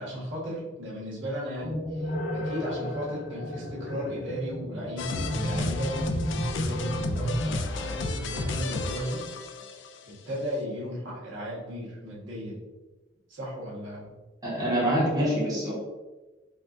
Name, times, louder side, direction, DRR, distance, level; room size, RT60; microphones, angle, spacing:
voice 1, 0.0-9.2 10.2-12.6 13.3-14.1, equal, 75° right, -7 dB, 1.5 m, -35 dB
sound 1, 1.6-7.6, equal, 45° left, 0.9 m, -33 dB
sound 2, 5.0-10.1, left 3 dB, 65° left, 0.3 m, -33 dB
voice 2, 14.4-15.7, equal, 20° right, -8 dB, 1.1 m, -25 dB
4.3 x 2.3 x 2.6 m, 1.2 s
head